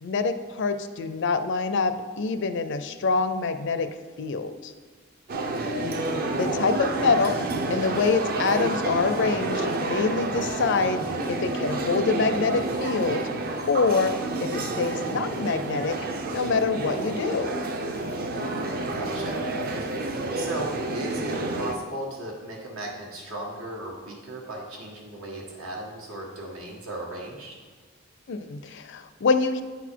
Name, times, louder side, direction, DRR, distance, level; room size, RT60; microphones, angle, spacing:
voice 1, 0.0-3.9 4.2-4.7 6.4-7.4 7.7-11.0 11.3-13.2 13.7-16.0 16.3-17.5 28.3-29.6, left 4 dB, 60° left, 10 dB, 0.4 m, -25 dB
sound 1, 5.3-21.7, right 2 dB, 45° right, 0.6 m, -29 dB
voice 2, 5.5-5.8 18.4-19.4 20.3-27.5, right 1 dB, 85° right, -2 dB, 1.6 m, -36 dB
9.3 x 4.1 x 4.6 m, 1.5 s
head